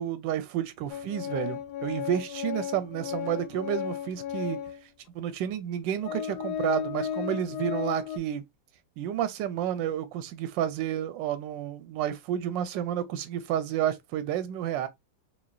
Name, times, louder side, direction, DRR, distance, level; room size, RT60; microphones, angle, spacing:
voice 1, 0.0-4.6 5.1-8.4 9.0-14.9, right 10 dB, 85° right, 1.3 m, -30 dB
Organ, 0.9-4.8 5.5-5.6 6.0-8.2, left 9 dB, 75° left, 1.0 m, -34 dB
4.2 x 2.7 x 2.2 m
omnidirectional pair, 1.9 m